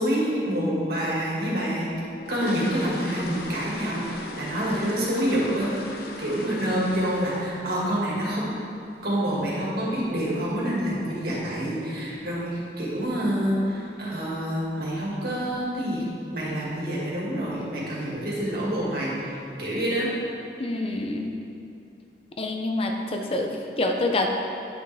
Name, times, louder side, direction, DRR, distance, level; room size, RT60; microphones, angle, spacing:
voice 1, 0.0-1.9 2.3-8.5 9.0-16.0 16.3-19.1 19.6-20.1, equal, 55° right, -6 dB, 2.0 m, -27 dB
sound 1, 2.0-7.8 8.1-8.4 8.7-8.8 9.2-9.3 9.7-9.9 10.2-10.3 10.9-11.0 11.2-11.4 11.9-12.2 12.5-12.6 13.0-13.2 13.5-13.6 14.0-14.1 14.7-15.0 15.4-15.7 16.1-16.2 16.6-16.7 17.4-17.6 18.0-18.5 18.9-19.0, left 2 dB, 60° left, 0.8 m, -39 dB
voice 2, 20.6-21.3 22.4-24.3, left 2 dB, 35° left, 2 dB, 0.5 m, -27 dB
9.6 x 6.3 x 3.5 m, 2.6 s
head